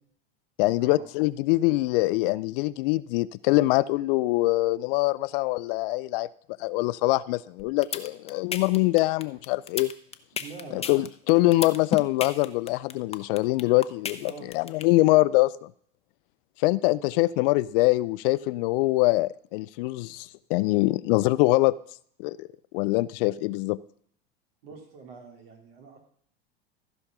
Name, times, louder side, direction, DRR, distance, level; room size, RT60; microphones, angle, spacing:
voice 1, 0.6-6.3 6.6-9.9 10.7-15.7 16.6-21.7 22.2-22.5 22.7-23.8, left 19 dB, 65° left, 17 dB, 0.4 m, -24 dB
sound 1, 7.6-14.8, left 7 dB, 20° left, 0.8 m, -32 dB
voice 2, 10.3-10.9 14.2-14.5 24.6-26.0, right 4 dB, 75° right, 3 dB, 3.0 m, -44 dB
14.0 x 5.2 x 5.9 m, 0.63 s
hypercardioid pair, 95°, 30 cm